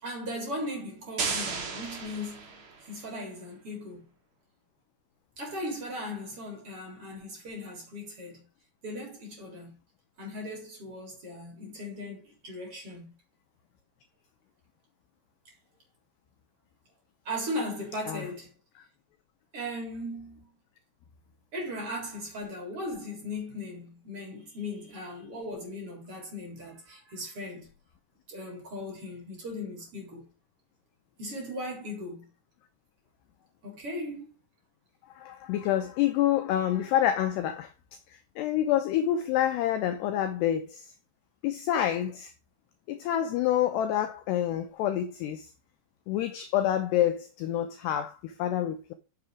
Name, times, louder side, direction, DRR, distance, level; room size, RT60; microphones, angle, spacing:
voice 1, 0.0-4.0 5.4-8.4 8.8-9.8 10.2-13.1 17.3-18.5 19.5-20.5 21.5-27.7 28.3-30.2 31.2-32.2 33.6-34.3, left 1 dB, 30° right, 4.0 m, -38 dB
sound 1, 1.2-3.0, right 4 dB, 55° right, 1.4 m, -34 dB
voice 2, 35.2-37.7 38.1-40.9 41.4-42.3 42.9-45.5 46.1-48.9, left 11 dB, 85° left, 2.4 m, -27 dB
7.2 x 6.7 x 4.9 m
omnidirectional pair, 5.6 m